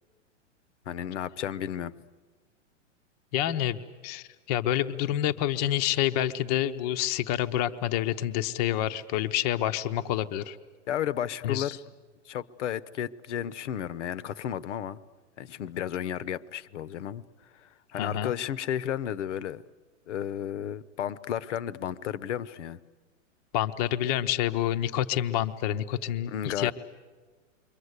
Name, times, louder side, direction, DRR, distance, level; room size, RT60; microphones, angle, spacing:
voice 1, 0.9-1.9 10.9-11.8 12.3-15.0 15.4-17.2 17.6-19.6 20.1-22.8 26.3-26.7, left 10 dB, 65° left, 17 dB, 1.0 m, -33 dB
voice 2, 3.3-10.6 11.4-11.7 17.9-18.3 23.5-26.7, left 12 dB, 35° left, 8 dB, 0.8 m, -28 dB
28.5 x 24.0 x 8.2 m, 1.4 s
hypercardioid pair, 155°, 38 cm